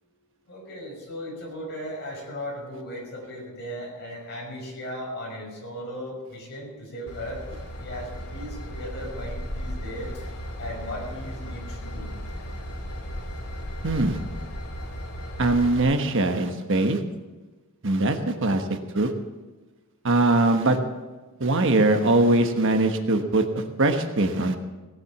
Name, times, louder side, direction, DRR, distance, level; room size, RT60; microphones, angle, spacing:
voice 1, 0.5-10.1 10.6-12.1, equal, 50° left, -2 dB, 5.7 m, -37 dB
Train / Engine, 7.1-15.8, equal, 80° left, 2.4 m, -35 dB
voice 2, 13.8-14.2 15.4-17.0 17.8-18.7 18.9-19.1 20.0-20.8 21.4-24.6, right 2 dB, 60° right, 6 dB, 1.2 m, -21 dB
18.0 x 7.9 x 7.2 m, 1.2 s
head